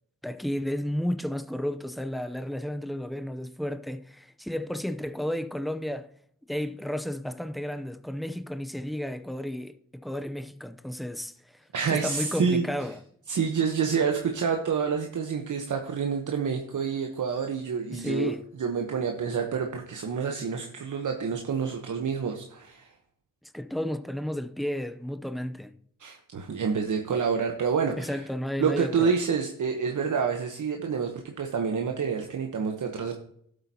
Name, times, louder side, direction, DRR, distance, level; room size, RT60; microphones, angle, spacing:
voice 1, 0.2-6.1 6.5-9.7 10.0-11.3 11.9-13.0 17.9-18.4 23.5-25.7 28.0-29.1, left 1 dB, ahead, 0.6 m, -32 dB
voice 2, 11.7-12.7 13.3-18.3 18.6-22.9 26.0-28.2 28.6-33.1, right 6 dB, 65° right, 1.0 m, -28 dB
12.0 x 8.0 x 2.8 m
cardioid pair, 55°, 34 cm